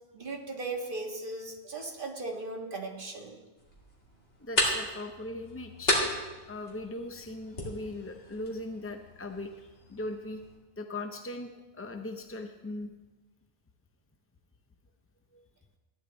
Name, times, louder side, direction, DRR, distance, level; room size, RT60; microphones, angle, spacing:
voice 1, 0.1-3.4, right 3 dB, 50° right, 1 dB, 1.7 m, -37 dB
sound 1, 3.6-10.6, left 1 dB, 80° left, 2.7 m, -35 dB
voice 2, 4.4-5.9 6.5-10.4 10.8-12.9 15.3-15.4, left 2 dB, 20° left, 5 dB, 0.4 m, -39 dB
15.0 x 10.0 x 3.9 m, 1.2 s
omnidirectional pair, 1.2 m